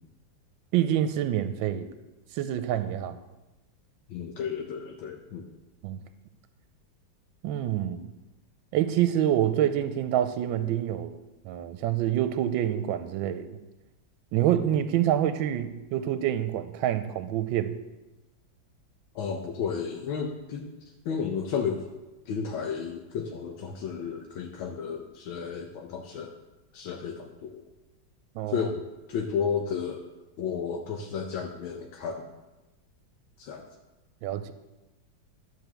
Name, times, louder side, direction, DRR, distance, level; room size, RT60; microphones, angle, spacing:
voice 1, 0.7-1.9 2.3-3.2 5.8-6.0 7.4-8.1 8.7-11.2 11.4-13.6 14.3-17.7 28.4-28.7 34.2-34.5, right 11 dB, 85° right, 10 dB, 1.4 m, -27 dB
voice 2, 4.1-5.5 19.1-20.7 21.0-21.8 22.3-26.3 26.7-27.6 28.5-30.0 30.4-32.3 33.4-33.6, left 6 dB, 90° left, 2 dB, 1.6 m, -32 dB
12.0 x 4.7 x 6.8 m, 1.0 s
omnidirectional pair, 2.1 m